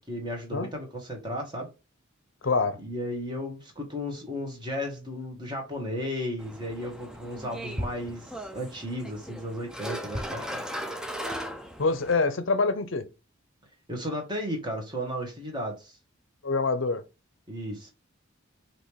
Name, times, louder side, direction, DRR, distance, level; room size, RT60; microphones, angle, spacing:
voice 1, 0.1-1.7 2.8-10.6 13.9-15.9 17.5-17.9, equal, 20° right, 1.5 m, -34 dB
voice 2, 2.4-2.8 11.8-13.0 16.4-17.0, left 3 dB, 60° left, 0.7 m, -25 dB
sound 1, 6.4-12.2, equal, 5° right, 0.5 m, -37 dB
5.5 x 2.9 x 3.3 m
head